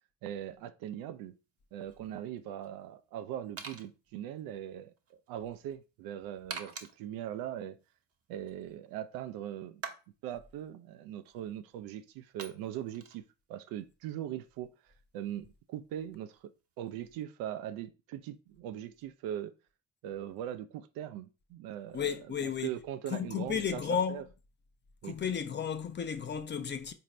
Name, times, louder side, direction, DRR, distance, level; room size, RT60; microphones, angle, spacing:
voice 1, 0.2-1.3 1.7-4.9 5.3-7.8 8.3-9.8 10.2-16.5 16.8-19.5 20.0-24.2 25.0-25.2, right 11 dB, 65° right, 0.5 m, -40 dB
sound 1, 1.2-17.1, right 5 dB, 40° right, 0.8 m, -51 dB
voice 2, 21.9-22.7 23.1-24.2 25.0-26.9, left 7 dB, 30° left, 0.5 m, -33 dB
4.0 x 2.6 x 3.1 m
hypercardioid pair, 55°, 38 cm